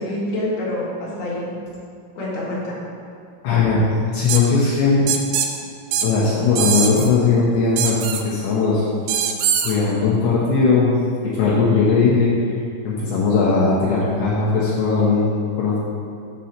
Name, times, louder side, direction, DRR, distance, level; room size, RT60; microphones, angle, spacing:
voice 1, 0.0-1.5 2.1-2.8, left 1 dB, 55° left, -7 dB, 2.2 m, -26 dB
voice 2, 3.4-5.1 6.0-8.8 9.6-10.9 11.2-12.3 12.8-15.8, left 4 dB, 85° left, -7 dB, 2.2 m, -18 dB
sound 1, 4.3-4.4 5.1-5.5 5.9-6.1 6.6-7.1 7.8-8.2 9.1-9.7, right 8 dB, 80° right, 2.9 m, -21 dB
6.9 x 4.3 x 6.4 m, 2.5 s
omnidirectional pair, 6.0 m